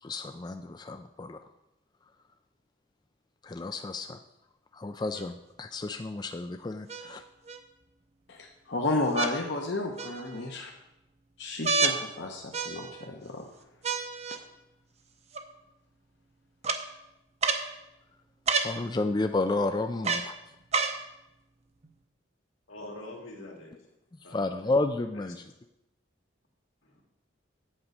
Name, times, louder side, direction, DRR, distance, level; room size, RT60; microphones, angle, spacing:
voice 1, 0.0-1.4 3.4-4.2 4.7-7.2 18.6-20.4 24.3-25.4, left 2 dB, 20° left, 7 dB, 0.3 m, -31 dB
sound 1, 5.2-5.3 6.9-7.6 9.1-9.3 10.0-10.5 11.6-12.0 12.5-13.1 13.8-14.4 15.3-15.4 16.6-16.8 17.4-17.7 18.5-18.7 20.0-20.3 20.7-21.0 21.8-21.9, right 4 dB, 30° right, 0.7 m, -29 dB
voice 2, 8.3-10.7 11.4-13.5, left 2 dB, 60° left, 0 dB, 0.9 m, -32 dB
voice 3, 22.7-23.8 24.2-24.7 25.1-25.5 26.8-27.0, left 1 dB, 85° left, 0 dB, 2.4 m, -45 dB
8.7 x 5.3 x 7.9 m, 0.90 s
head